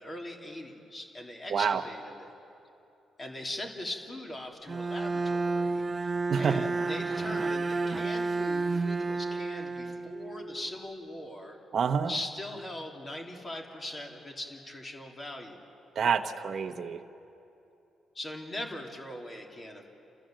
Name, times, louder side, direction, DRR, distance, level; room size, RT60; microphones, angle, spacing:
voice 1, 0.0-2.3 3.2-11.6 12.1-15.6 18.1-19.9, left 1 dB, 30° left, 0 dB, 3.0 m, -40 dB
voice 2, 1.5-1.8 6.3-6.7 11.7-12.1 16.0-17.0, right 6 dB, 55° right, 4 dB, 1.0 m, -27 dB
Bowed string instrument, 4.7-10.6, right 3 dB, 35° right, 0.7 m, -31 dB
30.0 x 14.5 x 7.6 m, 2.9 s
cardioid pair, 85°, 0 cm